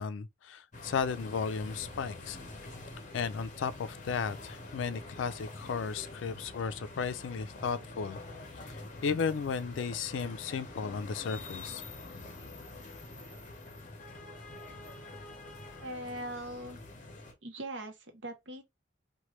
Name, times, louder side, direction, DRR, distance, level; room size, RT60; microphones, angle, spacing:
voice 1, 0.0-2.4 3.1-8.2 8.7-11.8, left 6 dB, 80° left, 0.4 m, -34 dB
sound 1, 0.7-17.3, left 2 dB, 40° left, 0.6 m, -46 dB
voice 2, 15.8-16.8 17.4-18.6, right 1 dB, 75° right, 0.7 m, -41 dB
3.1 x 2.2 x 2.9 m
head